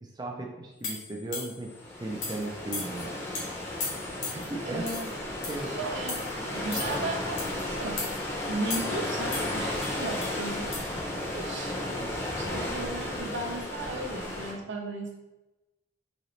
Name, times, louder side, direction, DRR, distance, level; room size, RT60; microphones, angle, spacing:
voice 1, 0.0-3.2 4.3-5.0 5.5-5.7 6.4-6.7, right 2 dB, 20° right, 0 dB, 0.4 m, -37 dB
sound 1, 0.8-1.7 2.2-2.4 2.7-3.0 3.3-3.5 3.8-4.5 4.9-5.1 5.4-5.7 6.1-6.3 6.7-7.0 7.4-7.6 8.0-8.2 8.7-9.0 9.3-10.3 10.7-10.8, left 3 dB, 85° left, 1.2 m, -36 dB
sound 2, 1.7-14.5, left 1 dB, 15° left, 0.7 m, -34 dB
voice 2, 4.2-5.2 5.6-6.2 6.5-8.0 8.4-15.2, right 2 dB, 80° right, 1 dB, 0.7 m, -36 dB
4.0 x 2.9 x 3.1 m, 1.0 s
head